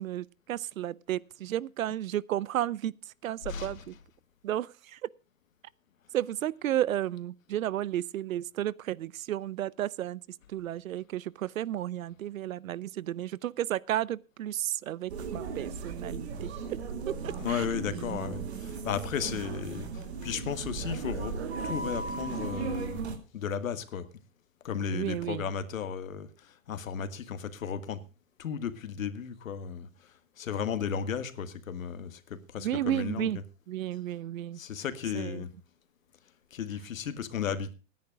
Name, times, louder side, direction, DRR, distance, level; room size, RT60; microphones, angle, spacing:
voice 1, 0.0-2.9 3.2-4.0 4.4-5.0 6.1-10.2 10.5-16.8 17.1-17.7 19.2-19.3 24.9-25.5 32.6-33.4 33.7-34.6 35.1-35.4, right 12 dB, 90° right, 0.7 m, -33 dB
voice 2, 3.4-4.0 17.4-21.4 21.6-23.0 23.3-24.1 24.6-28.0 28.4-33.4 34.6-35.5 36.5-37.7, left 7 dB, 80° left, 1.8 m, -35 dB
sound 1, 15.1-23.2, right 4 dB, 50° right, 2.4 m, -36 dB
25.0 x 10.5 x 2.3 m
hypercardioid pair, 170°, 40 cm